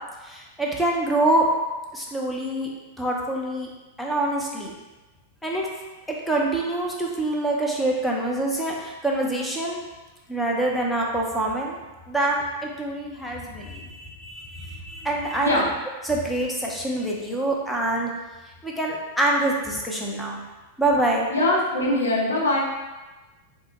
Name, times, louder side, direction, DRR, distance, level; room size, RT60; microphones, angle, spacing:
voice 1, 0.2-1.5 1.9-2.7 3.0-3.7 4.0-4.7 5.4-5.7 6.1-9.8 10.3-11.8 12.1-15.7 16.0-18.1 18.6-20.4 20.8-21.3, right 2 dB, 5° left, -2 dB, 0.6 m, -25 dB
voice 2, 21.3-22.6, left 1 dB, 85° left, -4 dB, 0.8 m, -22 dB
3.5 x 2.0 x 3.0 m, 1.1 s
hypercardioid pair, 100°, 0 cm